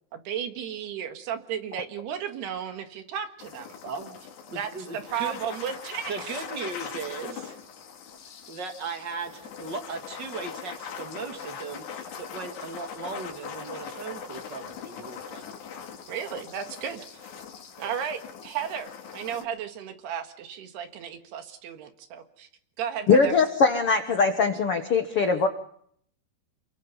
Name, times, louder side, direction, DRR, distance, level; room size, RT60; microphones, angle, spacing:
voice 1, 0.1-3.8 4.6-6.3 16.1-17.0 17.8-22.5 22.8-23.3, right 8 dB, 80° right, 6 dB, 3.8 m, -34 dB
sound 1, 3.4-19.4, left 7 dB, 90° left, 4.5 m, -41 dB
voice 2, 3.8-4.2 4.5-5.4 6.1-7.6 8.5-15.5 16.9-17.0 17.8-17.9, right 4 dB, 35° right, 5 dB, 2.2 m, -37 dB
voice 3, 23.1-25.5, left 4 dB, 65° left, 6 dB, 1.4 m, -21 dB
28.5 x 22.5 x 5.6 m, 0.66 s
omnidirectional pair, 4.7 m